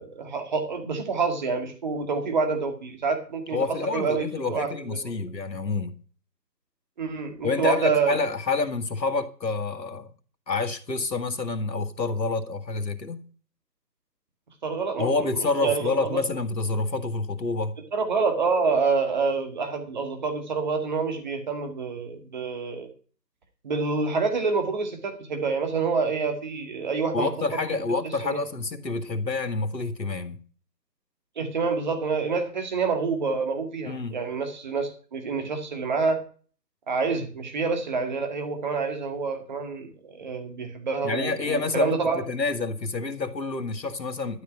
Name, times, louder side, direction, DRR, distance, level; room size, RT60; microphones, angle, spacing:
voice 1, 0.0-3.6 3.9-5.0 7.0-8.2 14.6-16.2 17.9-22.9 23.6-27.6 28.2-28.4 31.4-36.2 36.9-42.2, right 4 dB, 25° right, 2.0 m, -27 dB
voice 2, 3.5-5.9 7.4-10.1 10.5-13.2 15.0-17.8 27.1-30.4 33.8-34.2 41.0-44.4, left 3 dB, 85° left, 2.0 m, -28 dB
12.5 x 5.3 x 9.1 m
figure-of-eight pair, 160°, 50 cm